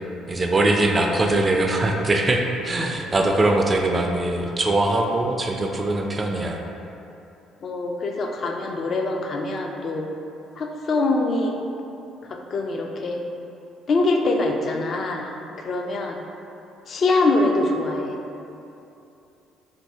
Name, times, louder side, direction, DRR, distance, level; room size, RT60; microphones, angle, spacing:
voice 1, 0.3-6.6, right 2 dB, 30° right, 2 dB, 0.3 m, -22 dB
voice 2, 0.9-1.3 3.1-3.2 7.6-10.1 10.6-11.6 12.3-13.2 13.9-15.3 15.6-16.2 16.9-18.2, left 2 dB, 50° left, 2 dB, 0.3 m, -24 dB
2.6 x 2.6 x 3.3 m, 2.8 s
supercardioid pair, 65°, 0 cm